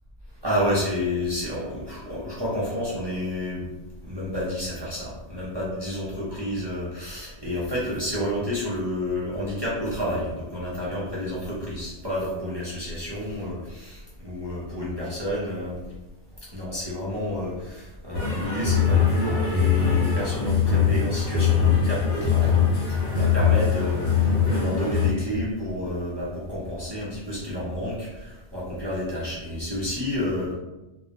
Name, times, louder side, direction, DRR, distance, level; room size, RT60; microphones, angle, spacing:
voice 1, 0.4-3.7 4.1-15.9 16.5-30.5, left 1 dB, 35° right, -8 dB, 0.4 m, -30 dB
sound 1, 18.1-25.1, left 7 dB, 60° left, 0.8 m, -22 dB
2.3 x 2.0 x 2.8 m, 1.0 s
omnidirectional pair, 1.2 m